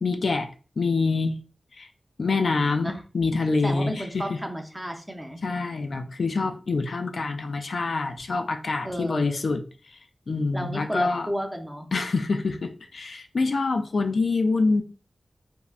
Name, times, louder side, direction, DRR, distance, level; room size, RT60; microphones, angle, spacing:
voice 1, 0.0-0.5 0.8-1.4 1.7-1.9 2.2-4.4 5.4-10.0 10.3-11.3 11.9-14.8, left 3 dB, 70° left, 0.3 m, -26 dB
voice 2, 3.6-5.4 8.8-9.4 10.5-11.9, equal, 5° right, 0.5 m, -32 dB
3.5 x 2.1 x 2.3 m
wide cardioid pair, 80°, 0 cm